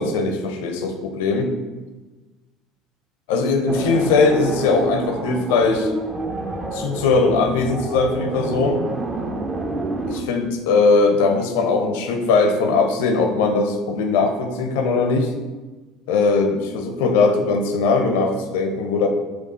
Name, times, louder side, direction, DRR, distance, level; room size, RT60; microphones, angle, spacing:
voice 1, 0.0-1.5 3.3-5.9 6.7-8.8 10.1-15.3 16.1-19.1, left 4 dB, 70° left, 4 dB, 0.5 m, -20 dB
sound 1, 3.7-10.2, right 2 dB, 25° right, 0.5 m, -28 dB
4.5 x 2.3 x 4.1 m, 1.2 s
hypercardioid pair, 70°, 0 cm